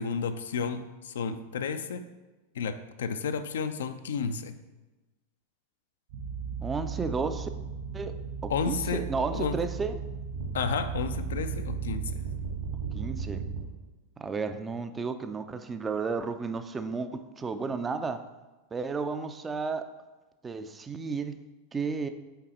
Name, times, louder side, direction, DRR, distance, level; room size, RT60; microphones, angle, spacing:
voice 1, 0.0-2.0 2.6-4.5 8.5-9.1 9.3-9.6 10.5-12.2, left 5 dB, 60° left, 9 dB, 0.4 m, -32 dB
sound 1, 6.1-13.6, right 6 dB, 60° right, 1.5 m, -35 dB
voice 2, 6.6-7.5 7.9-8.2 8.4-10.0 12.9-13.5 14.2-18.2 18.7-19.9 20.4-21.4 21.7-22.1, right 4 dB, 15° right, 9 dB, 0.4 m, -33 dB
5.8 x 4.0 x 4.2 m, 1.2 s
figure-of-eight pair, 90°, 0 cm